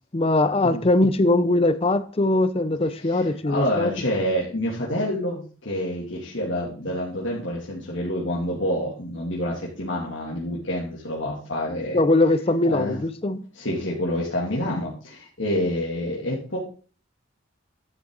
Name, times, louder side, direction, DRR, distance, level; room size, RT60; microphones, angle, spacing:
voice 1, 0.1-3.9 11.9-13.4, left 2 dB, 30° left, 0.6 m, -21 dB
voice 2, 2.9-12.0 12.6-13.0 13.5-16.6, equal, 75° left, 2.8 m, -28 dB
12.0 x 7.8 x 4.0 m
head